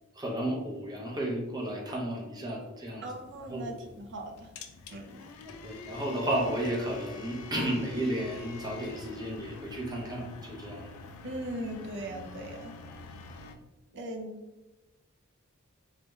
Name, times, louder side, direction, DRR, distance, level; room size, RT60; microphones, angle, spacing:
voice 1, 0.1-3.0 3.5-3.8 5.4-11.0, right 1 dB, 20° right, -1 dB, 0.7 m, -33 dB
voice 2, 3.0-4.5 4.9-5.2 11.2-12.8 13.9-14.4, right 1 dB, 55° right, 3 dB, 0.6 m, -39 dB
sound 1, 3.1-13.6, left 3 dB, 80° left, 0.5 m, -46 dB
3.3 x 2.4 x 3.1 m, 1.1 s
head